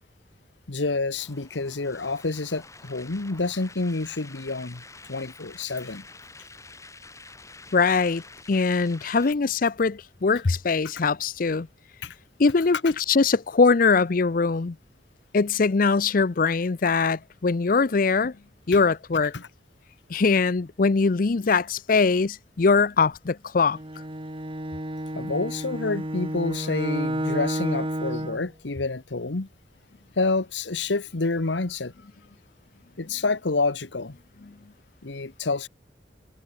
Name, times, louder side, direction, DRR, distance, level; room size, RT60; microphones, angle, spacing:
voice 1, 0.7-4.8 5.1-6.0 12.0-12.1 19.3-19.5 25.1-29.5 30.2-31.9 33.0-34.2 35.0-35.7, left 3 dB, 85° left, 1.2 m, -28 dB
sound 1, 1.2-9.3, left 3 dB, 15° left, 4.5 m, -48 dB
voice 2, 7.7-8.2 8.5-11.7 12.4-14.8 15.3-18.4 18.7-19.3 20.1-23.8, left 4 dB, 50° left, 0.6 m, -22 dB
Bowed string instrument, 23.7-28.5, right 1 dB, 30° right, 3.9 m, -31 dB
head